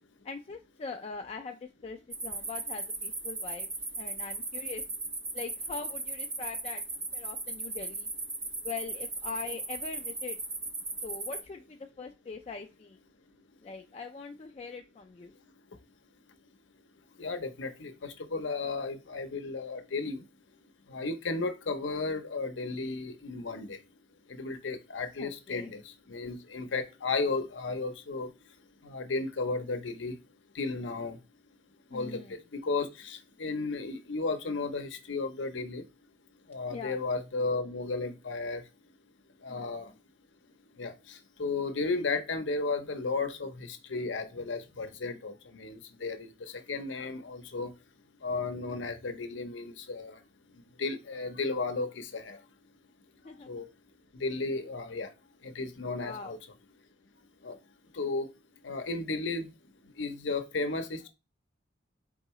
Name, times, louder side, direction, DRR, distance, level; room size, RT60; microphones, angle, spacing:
voice 1, 0.2-3.7 4.0-4.8 5.3-6.8 7.1-8.1 8.6-10.4 11.0-13.0 13.6-15.3 25.2-25.7 31.9-32.3 36.7-37.0 39.5-39.7 53.2-53.5 56.0-56.4, left 4 dB, 30° left, 0.3 m, -42 dB
sound 1, 2.1-11.4, right 3 dB, 15° right, 0.5 m, -37 dB
voice 2, 17.1-20.3 20.9-23.8 24.3-28.3 28.8-30.2 30.5-31.2 31.9-35.9 36.5-38.7 39.4-39.9 40.7-47.7 48.2-50.2 50.5-52.5 53.2-53.7 54.1-55.1 55.4-56.4 57.4-57.6 57.9-58.3 58.6-59.5 59.8-61.1, left 3 dB, 85° left, 0.7 m, -34 dB
4.6 x 3.7 x 3.0 m
head